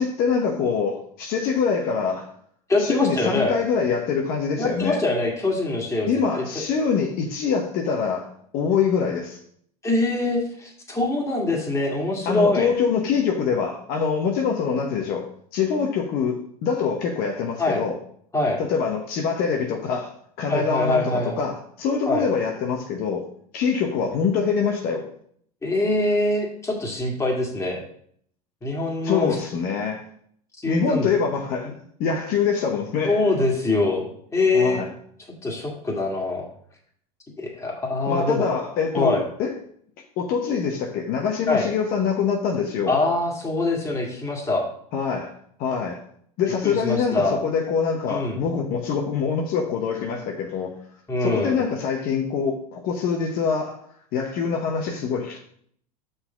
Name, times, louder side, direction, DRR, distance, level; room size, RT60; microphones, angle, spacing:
voice 1, 0.0-2.3 2.8-5.0 6.1-9.4 12.2-17.9 18.6-23.3 23.5-25.1 29.0-30.1 30.7-33.2 34.5-34.9 38.1-39.5 40.2-43.0 44.9-46.0 46.4-50.8 51.2-53.8 54.1-55.4, left 6 dB, 50° left, 0.9 m, -24 dB
voice 2, 2.7-3.6 4.6-6.4 9.8-12.7 17.6-17.8 18.3-18.6 20.5-21.4 22.1-22.2 25.6-27.8 28.6-29.3 30.6-31.1 32.0-32.1 33.1-34.8 35.4-36.5 37.4-38.5 38.9-39.2 41.5-41.7 42.9-44.6 46.6-47.4 48.1-48.4 51.1-51.6, left 2 dB, 15° left, 2.1 m, -24 dB
5.8 x 4.2 x 5.7 m
hypercardioid pair, 95°, 19 cm